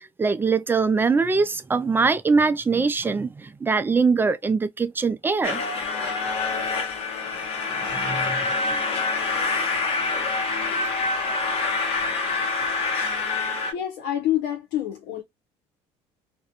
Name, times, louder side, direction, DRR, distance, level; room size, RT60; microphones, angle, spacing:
voice 1, 0.2-5.6 7.9-8.8, right 4 dB, 15° right, 0.3 m, -23 dB
sound 1, 5.4-13.7, left 3 dB, 55° left, 1.0 m, -26 dB
voice 2, 13.7-15.2, left 12 dB, 85° left, 0.7 m, -27 dB
2.4 x 2.2 x 2.8 m
cardioid pair, 105°, 12 cm